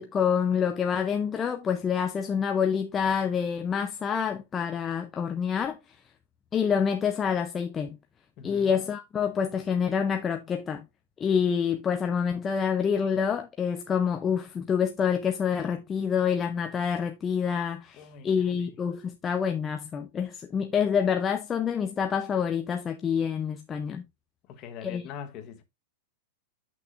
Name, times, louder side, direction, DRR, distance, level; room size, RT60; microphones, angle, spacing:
voice 1, 0.0-5.8 6.5-8.0 8.4-10.8 11.2-24.0 24.8-25.0, left 7 dB, 15° left, 0.5 m, -27 dB
voice 2, 8.4-8.8 18.0-18.7 24.5-25.6, left 7 dB, 30° left, 1.1 m, -43 dB
8.0 x 6.1 x 2.4 m
supercardioid pair, 170°, 0 cm